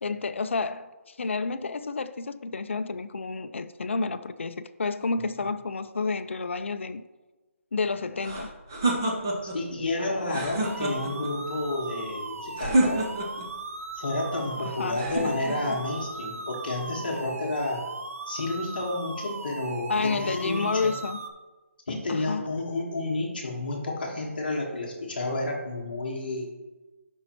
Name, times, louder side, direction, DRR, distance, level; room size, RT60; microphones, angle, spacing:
voice 1, 0.0-7.0 7.7-8.5 14.6-15.0 19.9-21.2 22.1-22.5, left 4 dB, 60° left, 0.4 m, -30 dB
sound 1, 8.2-9.6 10.2-11.3 12.6-13.5 14.9-15.8, right 2 dB, 15° right, 0.5 m, -28 dB
voice 2, 9.5-13.1 13.9-17.8 18.3-20.9 21.9-26.5, left 2 dB, 40° left, 1.3 m, -30 dB
sound 2, 10.6-21.3, right 3 dB, 75° right, 0.9 m, -38 dB
12.0 x 5.3 x 2.9 m
hypercardioid pair, 180°, 8 cm